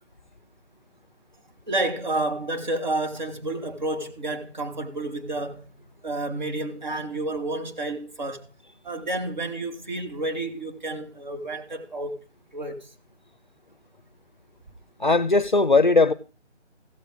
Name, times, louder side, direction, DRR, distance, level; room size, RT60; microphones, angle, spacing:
voice 1, 1.7-5.7 6.0-8.5 8.8-12.2 12.5-12.9, right 2 dB, 40° right, 2.8 m, -30 dB
voice 2, 15.0-16.1, left 3 dB, 40° left, 0.6 m, -18 dB
16.5 x 7.3 x 3.6 m
figure-of-eight pair, 165°, 35 cm